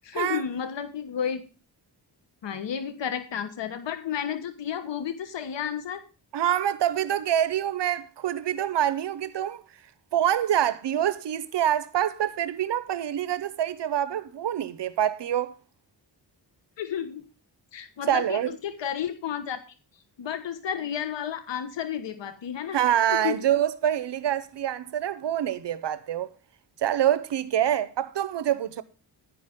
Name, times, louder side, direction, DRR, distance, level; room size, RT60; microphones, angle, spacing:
voice 1, 0.0-1.4 2.4-6.0 16.8-17.2 17.7-19.6 20.2-22.8 23.1-23.4, left 8 dB, 85° left, 1.2 m, -32 dB
voice 2, 6.3-9.6 10.1-15.5 18.1-18.5 22.7-26.3 26.8-28.8, right 10 dB, 75° right, 0.8 m, -26 dB
11.0 x 10.5 x 3.6 m
wide cardioid pair, 135°, 42 cm